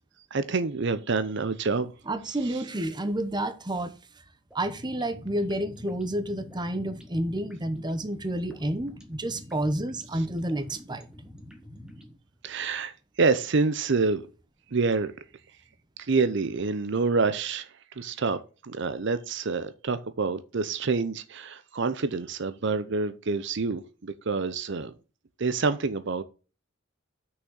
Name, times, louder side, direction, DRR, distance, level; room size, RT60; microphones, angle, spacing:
voice 1, 0.3-1.9 12.4-12.9 13.2-14.2 14.7-15.1 16.0-17.7 18.0-18.4 18.6-24.9 25.4-26.2, right 4 dB, 65° right, 0.7 m, -27 dB
voice 2, 2.1-3.9 4.5-11.1, right 1 dB, 20° right, 0.9 m, -30 dB
sound 1, 4.5-12.1, left 1 dB, 5° right, 1.7 m, -47 dB
6.4 x 6.1 x 6.3 m
head